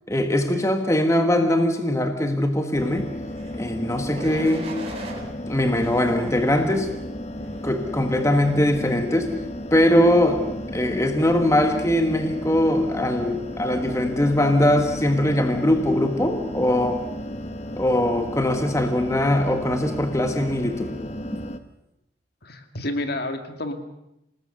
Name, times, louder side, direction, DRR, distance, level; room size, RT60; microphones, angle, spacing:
voice 1, 0.1-3.1 3.5-4.7 5.5-6.9 7.6-9.4 9.7-10.5 10.7-17.0 17.8-20.9, left 1 dB, 15° left, 5 dB, 1.5 m, -21 dB
sound 1, 2.7-21.6, left 1 dB, 35° left, 1.2 m, -34 dB
sound 2, 3.2-3.6 4.1-5.2 5.7-6.8 7.4-7.7, right 2 dB, 30° right, 4.2 m, -39 dB
voice 2, 22.4-23.7, left 1 dB, 50° left, 6 dB, 2.3 m, -29 dB
27.5 x 19.0 x 6.5 m, 0.84 s
head